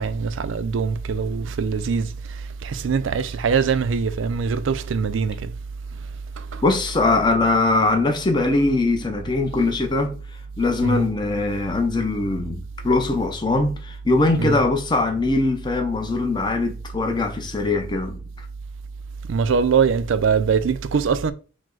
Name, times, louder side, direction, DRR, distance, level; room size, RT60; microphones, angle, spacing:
voice 1, 0.0-5.5 6.4-6.6 10.8-11.1 14.4-14.6 19.3-21.3, right 5 dB, 75° right, 0.4 m, -23 dB
voice 2, 6.6-10.1 10.6-18.2, left 2 dB, 20° left, 0.6 m, -21 dB
4.9 x 2.1 x 3.8 m
head